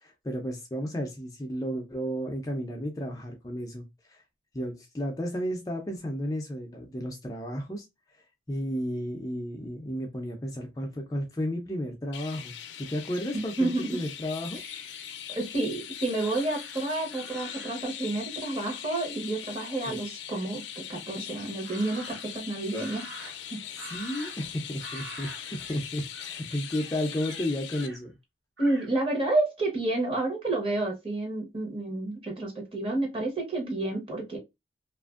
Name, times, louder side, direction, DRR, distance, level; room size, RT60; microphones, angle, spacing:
voice 1, 0.0-4.2 4.5-7.9 8.5-14.6 19.9-20.0 23.9-28.2, equal, 20° left, 0.4 m, -33 dB
Chirp tweet, 12.1-27.9, left 10 dB, 80° left, 0.4 m, -41 dB
voice 2, 13.3-14.0 14.6-23.6 28.6-34.4, right 2 dB, 30° right, 0.9 m, -30 dB
Crow, 16.1-17.9 21.6-22.4 22.7-24.5 24.8-25.8 26.1-26.4 26.7-28.0 28.6-28.9, right 2 dB, 80° right, 0.9 m, -46 dB
2.8 x 2.5 x 2.3 m
head